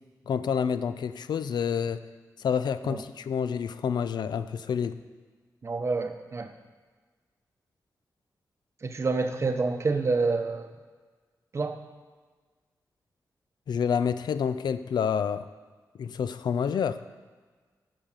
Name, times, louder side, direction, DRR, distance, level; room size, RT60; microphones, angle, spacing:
voice 1, 0.3-2.0 2.4-5.0 13.7-15.5 16.0-17.0, left 7 dB, 90° left, 12 dB, 0.5 m, -28 dB
voice 2, 5.6-6.5 8.8-10.8 11.5-11.8, right 3 dB, 40° right, 7 dB, 0.9 m, -28 dB
12.5 x 5.1 x 7.5 m, 1.5 s
wide cardioid pair, 130°, 7 cm